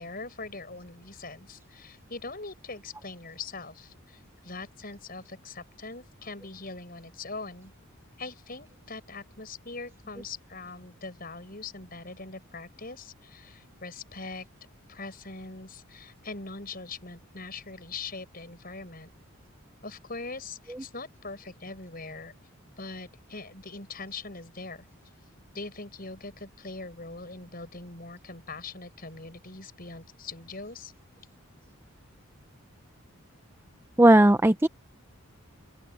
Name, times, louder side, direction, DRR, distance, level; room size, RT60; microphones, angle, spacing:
voice 1, 0.0-7.7 8.2-14.5 14.9-19.1 19.8-22.3 22.8-24.9 25.5-30.9, left 3 dB, 40° left, 7.1 m, -42 dB
voice 2, 34.0-34.7, right 1 dB, 10° right, 0.5 m, -17 dB
open air
head